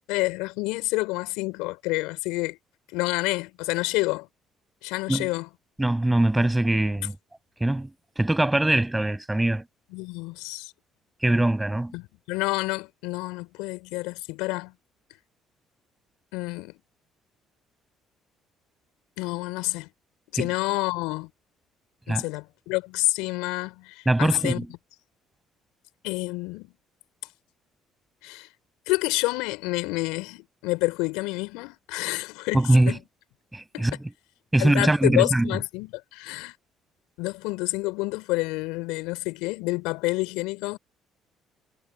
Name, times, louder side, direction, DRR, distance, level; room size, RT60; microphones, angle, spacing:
voice 1, 0.1-2.6 2.9-4.3 4.8-5.5 9.9-10.7 11.9-14.7 16.3-16.7 19.2-19.9 20.3-21.3 22.1-24.6 26.0-26.7 28.2-28.5 28.9-33.0 33.7-33.9 34.6-36.5 37.2-40.8, left 23 dB, 75° left, 3.6 m, -28 dB
voice 2, 5.8-7.1 7.6-7.9 8.2-9.6 11.2-12.0 20.4-20.5 22.1-22.2 24.0-24.7 32.5-33.0 33.5-34.1 34.5-35.5, right 1 dB, 10° right, 6.6 m, -22 dB
hypercardioid pair, 50°, 0 cm